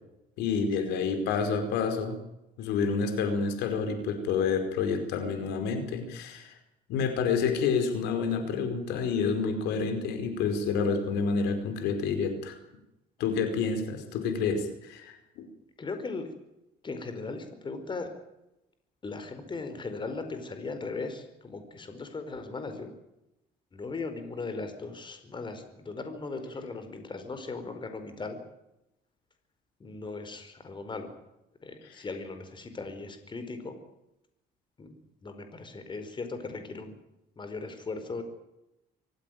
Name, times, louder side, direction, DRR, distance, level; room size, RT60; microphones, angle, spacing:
voice 1, 0.4-2.2 2.6-6.5 6.9-12.6 13.2-15.4 31.8-32.1, left 5 dB, 85° left, 7 dB, 4.9 m, -29 dB
voice 2, 15.8-16.3 16.8-18.1 19.0-22.9 23.7-28.4 29.8-31.1 31.6-33.7 34.8-34.9 35.2-36.9 37.4-38.2, left 3 dB, 30° left, 8 dB, 4.8 m, -38 dB
25.0 x 16.0 x 9.4 m, 0.90 s
cardioid pair, 110°, 17 cm